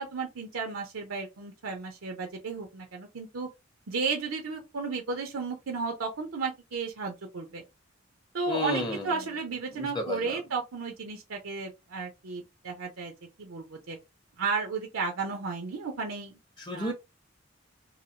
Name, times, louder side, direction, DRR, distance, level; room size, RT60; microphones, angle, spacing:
voice 1, 0.0-3.5 3.9-7.6 8.3-13.1 13.4-14.0 14.4-16.4 16.7-16.9, right 4 dB, 90° right, 0.6 m, -33 dB
voice 2, 8.5-9.3 9.7-10.4 16.6-16.9, left 1 dB, 20° left, 0.6 m, -32 dB
2.8 x 2.7 x 2.8 m
head